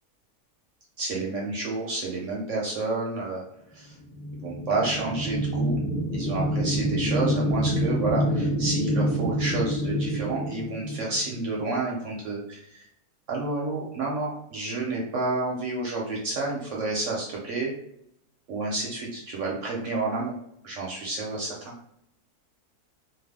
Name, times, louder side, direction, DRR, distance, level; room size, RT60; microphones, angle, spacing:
voice 1, 1.0-3.4 3.7-3.9 4.4-5.8 6.1-12.9 13.3-17.7 18.5-20.3 20.6-21.7, right 3 dB, 65° right, -2 dB, 0.8 m, -30 dB
sound 1, 4.0-11.7, equal, 40° left, 0.8 m, -27 dB
2.6 x 2.3 x 3.4 m, 0.76 s
omnidirectional pair, 1.6 m